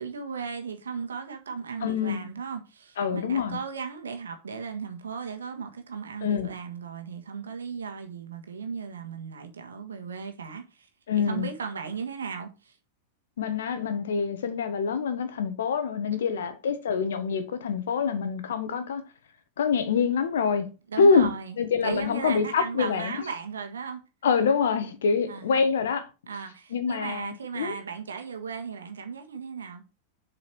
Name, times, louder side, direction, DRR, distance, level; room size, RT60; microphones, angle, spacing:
voice 1, 0.0-10.9 11.2-12.7 16.1-16.5 20.9-21.6 21.8-24.0 25.3-25.5 26.3-29.8, right 5 dB, 75° right, 1.6 m, -36 dB
voice 2, 1.8-2.3 3.0-3.6 6.2-6.5 11.1-11.5 13.4-19.0 19.6-20.7 21.0-21.3 21.6-23.2 24.2-26.1 26.7-27.7, left 5 dB, 70° left, 1.4 m, -25 dB
7.4 x 4.9 x 4.7 m
figure-of-eight pair, 95°, 0 cm